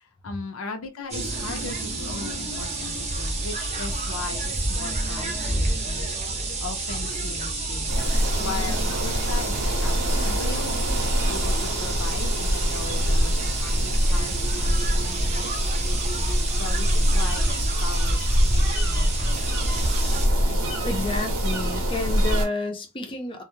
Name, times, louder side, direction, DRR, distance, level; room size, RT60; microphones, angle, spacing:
voice 1, 0.0-6.1 6.6-10.7 11.2-15.7 16.6-17.6 17.8-20.1 20.5-20.7, left 4 dB, 85° left, 0.5 m, -38 dB
sound 1, 1.1-20.3, right 2 dB, 30° right, 0.6 m, -29 dB
sound 2, 7.9-22.5, equal, 90° right, 0.8 m, -24 dB
voice 2, 20.8-23.4, left 2 dB, 25° left, 0.5 m, -30 dB
2.1 x 2.0 x 3.0 m
head